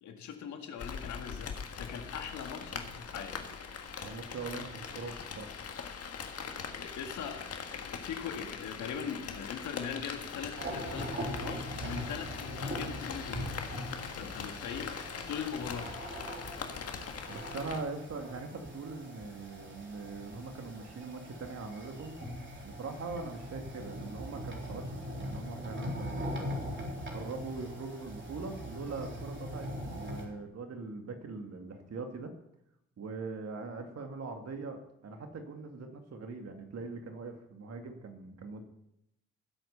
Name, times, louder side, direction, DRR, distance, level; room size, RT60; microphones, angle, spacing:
voice 1, 0.0-3.5 6.8-7.4 7.7-13.6 14.2-14.9 15.3-15.9, left 7 dB, 70° left, 5 dB, 1.9 m, -41 dB
Rain, 0.8-17.8, left 6 dB, 50° left, 1.7 m, -41 dB
voice 2, 4.0-5.5 17.3-22.2 22.6-24.8 25.1-26.6 27.1-32.3 33.0-38.6, right 3 dB, 55° right, 5 dB, 2.3 m, -41 dB
sound 1, 10.6-30.3, equal, 40° right, 3.9 m, -41 dB
15.5 x 8.1 x 5.5 m, 0.82 s
hypercardioid pair, 50°, 31 cm